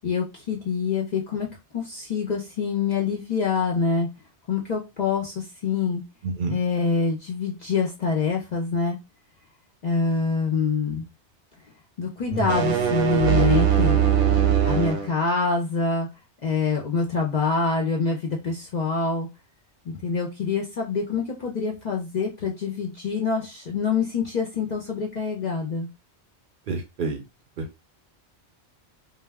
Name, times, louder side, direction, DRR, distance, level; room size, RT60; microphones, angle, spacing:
voice 1, 0.0-1.5 1.7-4.1 4.5-6.0 6.5-9.0 9.8-11.1 12.0-14.1 14.7-16.1 16.4-19.3 19.9-25.9, left 4 dB, 55° left, -1 dB, 0.5 m, -25 dB
voice 2, 6.2-6.6 12.3-12.5 26.7-27.2 27.6-27.8, right 3 dB, 60° right, 3 dB, 0.6 m, -29 dB
sound 1, 12.3-15.1, right 9 dB, 80° right, 0.9 m, -21 dB
2.1 x 2.0 x 3.3 m, 0.25 s
omnidirectional pair, 1.2 m